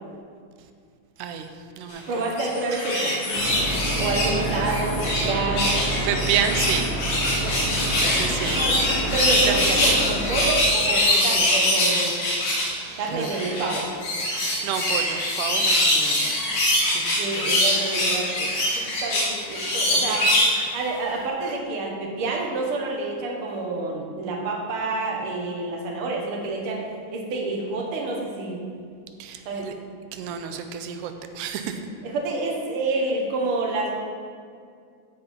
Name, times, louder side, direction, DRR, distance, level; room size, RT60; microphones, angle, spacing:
voice 1, 2.1-3.6 4.0-5.8 7.5-7.6 8.2-8.5 9.1-12.2 13.0-13.8 16.1-16.5 16.9-20.2 20.7-26.8 27.1-28.6 29.4-29.7 32.0-33.9, right 3 dB, 55° right, -1 dB, 1.8 m, -28 dB
sound 1, 2.2-5.3 5.5-12.7 13.2-20.6 21.1-21.2, left 1 dB, 90° left, 3.7 m, -23 dB
sound 2, 3.3-10.5, right 1 dB, 65° left, 3.1 m, -28 dB
voice 2, 6.0-6.9 7.2-7.5 8.0-9.1 9.5-9.8 11.9-13.3 14.3-16.3 16.8-17.0 17.4-17.5 19.9-20.2 29.2-29.7 30.1-31.8, right 8 dB, 90° right, 7 dB, 2.2 m, -31 dB
15.0 x 5.2 x 4.4 m, 2.2 s
omnidirectional pair, 3.7 m